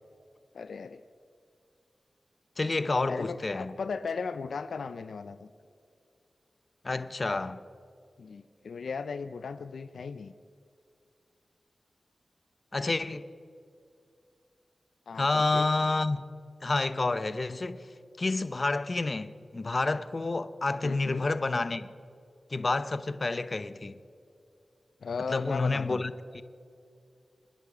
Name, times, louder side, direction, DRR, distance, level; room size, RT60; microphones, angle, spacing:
voice 1, 0.5-1.0 3.1-5.5 8.2-10.3 15.1-15.6 20.8-21.2 25.0-26.0, left 5 dB, 90° left, 0.4 m, -36 dB
voice 2, 2.6-3.7 6.8-7.6 12.7-13.3 15.1-16.3 16.6-17.9 18.2-21.9 22.5-24.0 25.3-26.4, left 3 dB, 45° left, 0.7 m, -29 dB
26.5 x 10.5 x 5.0 m
cardioid pair, 55°, 0 cm